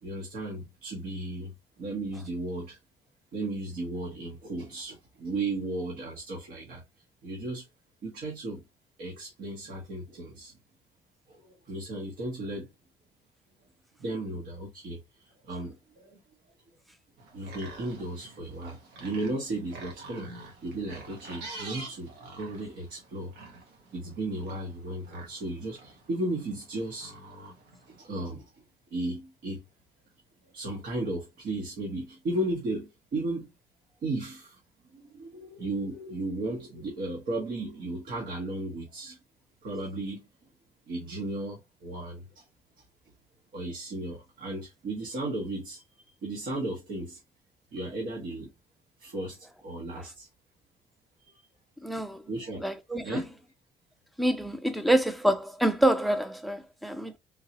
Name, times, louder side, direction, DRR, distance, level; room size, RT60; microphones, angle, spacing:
voice 1, 0.0-2.8 3.3-6.8 7.2-7.7 8.0-8.6 9.0-10.5 11.3-12.7 14.0-16.2 17.3-23.3 23.9-27.1 27.9-28.5 28.9-29.6 30.4-33.5 34.0-34.6 34.9-39.2 39.6-40.3 40.9-42.4 42.8-42.9 43.5-47.2 47.7-48.5 49.0-50.3 51.2-51.4 52.3-52.7 53.0-53.3, right 2 dB, 55° right, 1.3 m, -35 dB
sound 1, 17.2-28.0, right 2 dB, 85° right, 1.4 m, -47 dB
voice 2, 51.8-52.2 52.6-53.2 54.2-57.2, right 1 dB, ahead, 0.5 m, -26 dB
3.7 x 2.7 x 2.9 m
cardioid pair, 110°, 17 cm